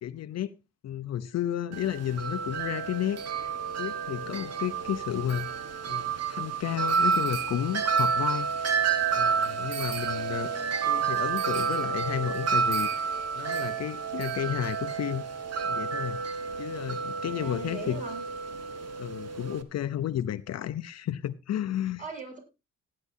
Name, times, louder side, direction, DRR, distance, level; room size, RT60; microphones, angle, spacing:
voice 1, 0.0-0.5 0.8-10.5 10.9-15.3 15.6-16.2 16.6-18.0 19.0-22.0, left 11 dB, 60° left, 0.7 m, -32 dB
Wind chime, 1.7-19.6, right 6 dB, 55° right, 1.5 m, -30 dB
voice 2, 10.1-10.8 17.2-18.2 22.0-22.4, right 3 dB, 25° right, 7.6 m, -41 dB
17.5 x 9.6 x 2.7 m
cardioid pair, 90°, 30 cm